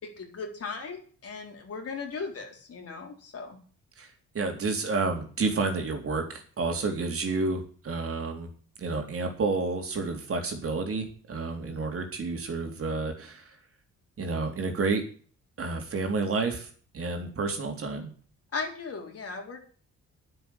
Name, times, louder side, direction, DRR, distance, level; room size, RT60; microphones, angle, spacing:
voice 1, 0.0-3.6 18.5-19.7, left 4 dB, 50° left, 1 dB, 4.2 m, -37 dB
voice 2, 4.3-8.5 8.8-13.5 14.2-15.0 15.6-18.1, right 3 dB, 50° right, 4 dB, 3.8 m, -30 dB
10.0 x 7.7 x 8.7 m, 0.43 s
cardioid pair, 90°, 30 cm